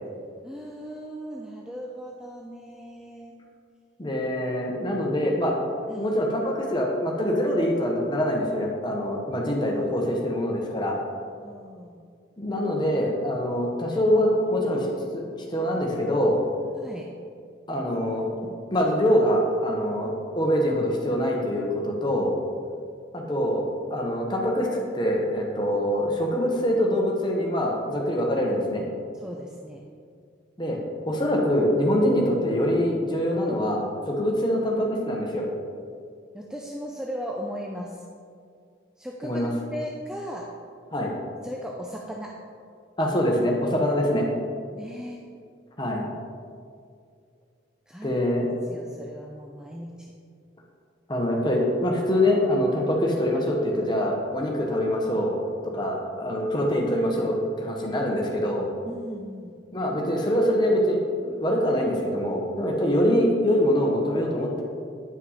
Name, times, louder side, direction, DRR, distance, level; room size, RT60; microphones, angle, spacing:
voice 1, 0.4-3.3 5.9-6.2 9.7-10.1 11.4-12.0 16.7-17.1 29.1-29.8 36.3-38.0 39.0-39.4 39.7-40.5 41.4-42.4 44.7-45.2 47.9-48.2 48.7-49.9 56.3-56.4 58.9-59.6, equal, 5° right, -1 dB, 0.4 m, -37 dB
voice 2, 4.0-5.5 6.0-11.0 12.4-15.2 15.5-16.4 17.7-18.3 18.7-22.3 23.1-24.7 24.9-28.9 30.6-30.8 31.1-35.4 39.2-39.5 40.9-41.1 43.0-44.3 45.8-46.1 48.0-48.5 51.1-55.3 55.7-58.7 59.7-64.6, equal, 25° left, -1 dB, 1.0 m, -24 dB
9.4 x 5.1 x 4.2 m, 2.2 s
head